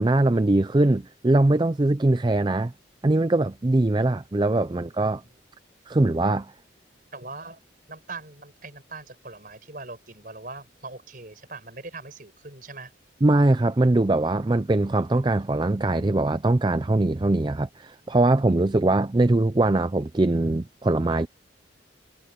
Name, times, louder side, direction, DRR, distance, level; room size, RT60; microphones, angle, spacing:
voice 1, 0.0-2.7 3.0-5.2 5.9-6.5 13.2-21.3, right 2 dB, 25° right, 0.4 m, -22 dB
voice 2, 7.1-7.6 7.9-12.9, right 3 dB, 45° right, 5.2 m, -41 dB
head